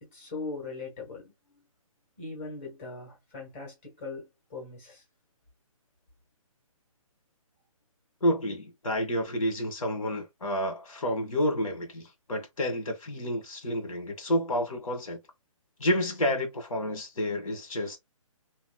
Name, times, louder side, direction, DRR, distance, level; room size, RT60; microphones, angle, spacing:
voice 1, 0.0-1.6 2.2-5.0, left 3 dB, 25° left, 1.5 m, -40 dB
voice 2, 8.2-15.2 15.8-18.0, equal, 70° left, 1.8 m, -29 dB
3.2 x 2.9 x 2.3 m
hypercardioid pair, 175°, 18 cm